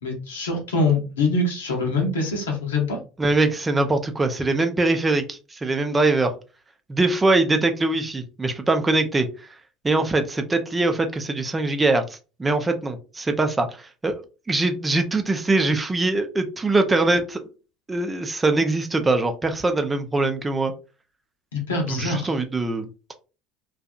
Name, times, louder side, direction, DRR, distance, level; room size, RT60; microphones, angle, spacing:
voice 1, 0.0-3.0 21.5-22.3, left 3 dB, 80° left, 1 dB, 0.8 m, -24 dB
voice 2, 3.2-6.3 6.9-9.5 9.8-14.1 14.5-17.4 17.9-20.7 21.9-22.9, right 2 dB, 20° right, 6 dB, 0.5 m, -22 dB
2.7 x 2.4 x 2.3 m, 0.33 s
hypercardioid pair, 70°, 0 cm